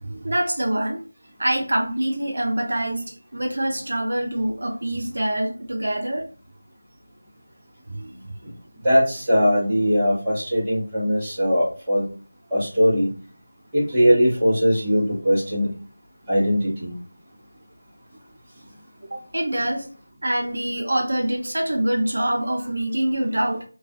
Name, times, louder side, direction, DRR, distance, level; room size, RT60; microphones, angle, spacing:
voice 1, 0.0-1.0 1.4-6.3 7.9-8.3 19.1-19.8 20.2-23.6, right 1 dB, 60° right, 2 dB, 0.5 m, -25 dB
voice 2, 8.8-12.0 12.5-13.1 13.7-15.7 16.3-16.9, equal, 10° right, -11 dB, 0.8 m, -20 dB
2.3 x 2.3 x 2.5 m, 0.39 s
figure-of-eight pair, 175°, 0 cm